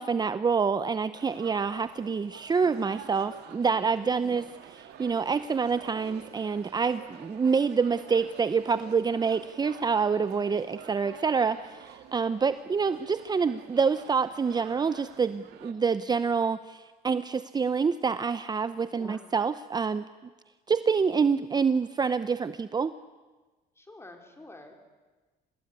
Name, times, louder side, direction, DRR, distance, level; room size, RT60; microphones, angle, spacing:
voice 1, 0.0-4.4 4.7-20.0 20.7-22.9, right 5 dB, 25° right, 13 dB, 0.7 m, -27 dB
sound 1, 1.1-15.7, right 10 dB, 80° right, 2.6 m, -49 dB
voice 2, 4.0-4.4 18.9-19.2 23.7-24.8, left 2 dB, 15° left, 4 dB, 4.6 m, -49 dB
26.5 x 19.5 x 9.7 m, 1.3 s
cardioid pair, 110°, 17 cm